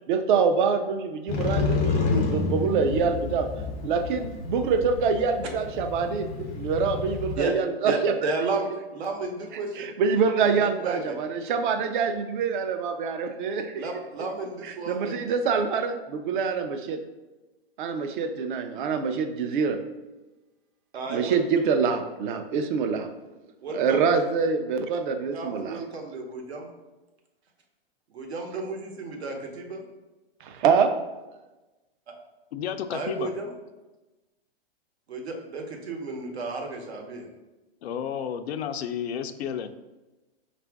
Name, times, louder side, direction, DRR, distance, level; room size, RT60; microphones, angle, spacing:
voice 1, 0.1-3.5 3.8-6.3 6.6-8.3 9.8-13.9 14.6-17.0 17.8-19.8 21.1-23.1 23.7-25.8 30.4-30.9, right 5 dB, 55° right, 7 dB, 0.5 m, -25 dB
Motorcycle, 1.3-7.4, left 4 dB, 20° left, 0.3 m, -29 dB
voice 2, 7.8-9.8 10.4-10.5 10.8-11.1 13.8-15.1 20.9-21.4 23.6-24.0 25.3-26.7 28.1-29.8 32.9-33.5 35.1-37.3, right 3 dB, 85° right, 2 dB, 1.0 m, -32 dB
voice 3, 32.5-33.3 37.8-39.7, left 8 dB, 80° left, 10 dB, 0.5 m, -31 dB
5.0 x 2.5 x 3.4 m, 1.1 s
hypercardioid pair, 140°, 31 cm